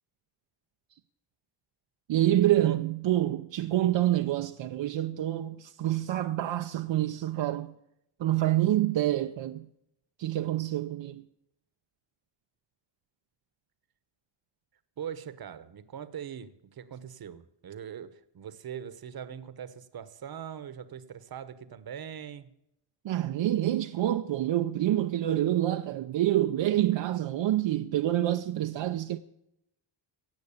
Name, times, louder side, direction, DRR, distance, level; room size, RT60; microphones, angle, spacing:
voice 1, 2.1-7.7 8.2-9.7 10.2-11.3 23.0-29.2, right 13 dB, 70° right, 0.7 m, -27 dB
voice 2, 15.0-22.5, right 8 dB, 50° right, 1.1 m, -41 dB
17.5 x 7.9 x 7.1 m
wide cardioid pair, 140°, 46 cm